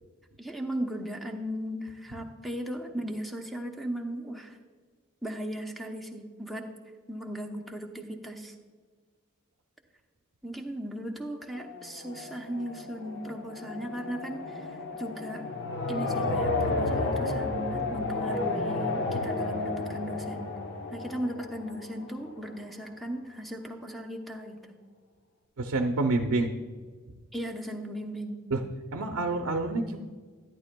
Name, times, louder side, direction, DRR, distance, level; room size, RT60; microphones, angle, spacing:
voice 1, 0.4-4.6 5.2-6.6 7.1-8.5 10.4-15.4 15.9-20.5 20.9-24.6 27.3-28.4, equal, ahead, 3 dB, 0.7 m, -37 dB
sound 1, 11.5-22.4, left 2 dB, 55° left, 0.8 m, -32 dB
voice 2, 25.6-26.5 28.5-28.6 28.9-30.0, right 2 dB, 65° right, 4 dB, 0.6 m, -27 dB
11.5 x 10.5 x 2.2 m, 1.5 s
head